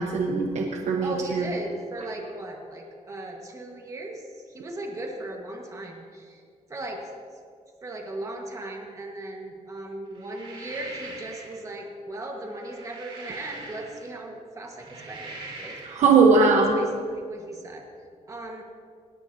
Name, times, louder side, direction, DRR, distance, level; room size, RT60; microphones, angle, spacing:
voice 1, 0.0-1.5 15.8-16.7, right 4 dB, 65° right, 1 dB, 1.1 m, -20 dB
voice 2, 1.0-6.4 6.7-7.1 7.8-16.0 16.5-17.9 18.3-18.6, right 1 dB, 25° right, 1 dB, 1.5 m, -37 dB
sound 1, 10.1-11.6 12.4-14.2 14.7-16.1, right 2 dB, 45° right, 2.8 m, -42 dB
18.5 x 14.0 x 2.8 m, 2.2 s
wide cardioid pair, 155°, 13 cm